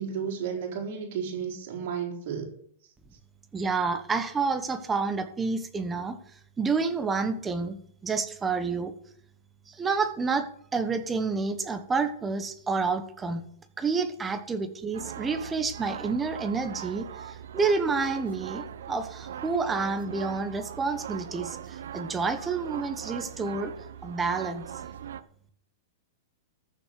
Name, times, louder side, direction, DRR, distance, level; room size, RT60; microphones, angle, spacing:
voice 1, 0.0-2.5, right 7 dB, 55° right, 0 dB, 4.3 m, -33 dB
voice 2, 3.5-6.2 6.6-7.8 8.0-8.9 9.7-13.4 13.8-23.7 24.0-24.7, right 4 dB, 10° right, 9 dB, 1.2 m, -29 dB
sound 1, 14.9-25.2, right 9 dB, 80° right, 1.0 m, -40 dB
14.5 x 7.4 x 6.8 m, 0.63 s
supercardioid pair, 155°, 0 cm